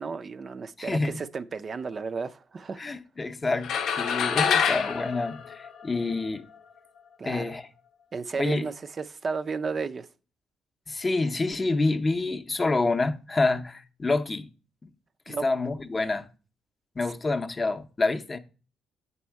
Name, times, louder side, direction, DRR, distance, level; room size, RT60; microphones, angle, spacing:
voice 1, 0.0-2.8 4.3-4.4 7.2-7.6 8.1-10.1 15.3-15.4, right 5 dB, 40° right, 0.4 m, -33 dB
voice 2, 0.8-1.1 2.8-6.5 7.2-7.7 8.4-8.7 10.9-14.5 14.8-14.9 15.3-16.3 17.0-18.4, left 3 dB, 25° left, 0.5 m, -27 dB
sound 1, 3.6-6.2, left 7 dB, 75° left, 0.6 m, -26 dB
7.1 x 4.2 x 4.5 m
cardioid pair, 90°, 0 cm